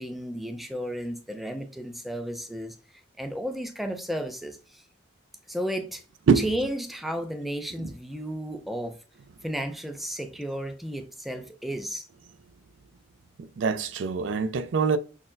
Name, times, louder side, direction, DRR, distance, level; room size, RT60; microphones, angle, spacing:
voice 1, 0.0-4.9 5.5-6.0 6.4-9.0 9.4-12.1, equal, ahead, 0.3 m, -33 dB
voice 2, 13.4-15.0, right 5 dB, 80° right, 0.4 m, -24 dB
6.0 x 2.0 x 2.6 m
head